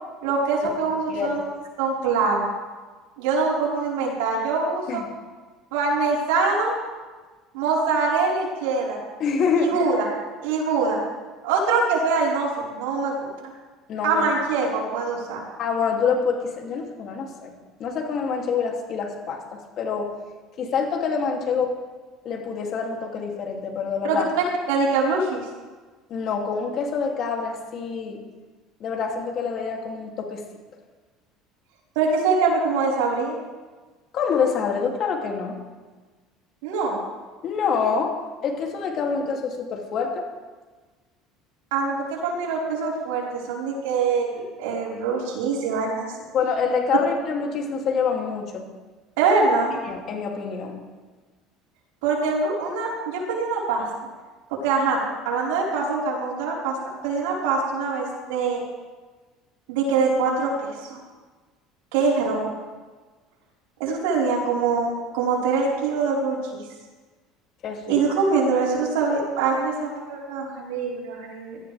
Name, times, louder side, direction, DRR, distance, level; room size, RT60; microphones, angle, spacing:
voice 1, 0.2-1.4 1.8-2.4 3.2-5.0 5.7-6.7 7.5-9.0 9.6-10.1 10.4-11.0 11.4-13.1 14.0-15.4 24.0-24.2 24.7-25.4 31.9-33.4 36.6-37.0 41.7-46.1 49.2-49.8 52.0-53.8 54.6-56.8 57.0-58.6 59.7-61.0 61.9-62.5 63.8-66.6 67.9-71.6, right 4 dB, 85° right, -4 dB, 4.7 m, -24 dB
voice 2, 1.1-1.4 4.9-5.1 9.2-9.8 13.9-14.3 15.6-17.5 17.8-20.1 20.6-21.7 22.2-24.3 26.1-28.2 28.8-30.4 34.1-35.5 37.4-38.1 38.4-40.3 46.3-48.7 49.8-50.8 67.6-68.0, left 5 dB, 50° left, 1 dB, 2.7 m, -26 dB
18.0 x 13.5 x 3.5 m, 1.3 s
supercardioid pair, 105°, 0 cm